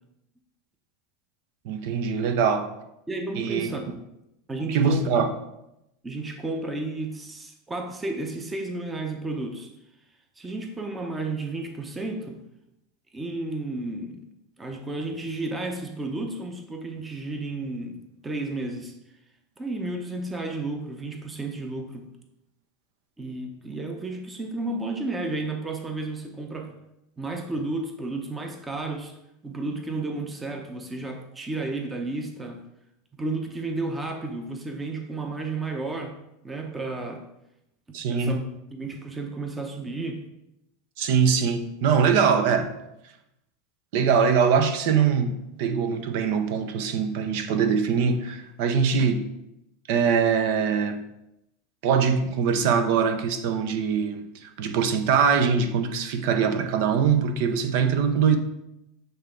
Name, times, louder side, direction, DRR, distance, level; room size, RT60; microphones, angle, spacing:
voice 1, 1.6-2.7 3.3-3.7 4.7-5.3 37.9-38.4 41.0-42.7 43.9-49.3 49.9-51.0 51.8-58.4, right 6 dB, 65° right, 0.7 m, -23 dB
voice 2, 3.1-3.9 4.5-5.2 6.0-9.7 10.4-12.4 13.1-14.3 14.6-18.9 19.6-22.1 23.2-26.7 27.2-29.1 29.4-32.6 33.1-36.2 36.4-37.2 38.1-38.4 38.7-40.2, right 2 dB, 15° right, 0.8 m, -32 dB
7.9 x 3.4 x 3.8 m
supercardioid pair, 120°, 0 cm